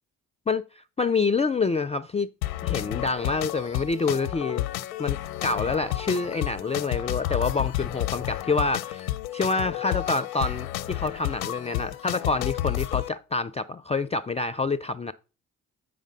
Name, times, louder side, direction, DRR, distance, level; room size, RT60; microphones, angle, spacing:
voice 1, 1.0-2.3 2.6-4.7 5.0-15.1, left 4 dB, 15° left, 0.3 m, -27 dB
sound 1, 2.4-13.1, left 15 dB, 85° left, 0.6 m, -31 dB
8.3 x 5.1 x 3.9 m
hypercardioid pair, 45°, 41 cm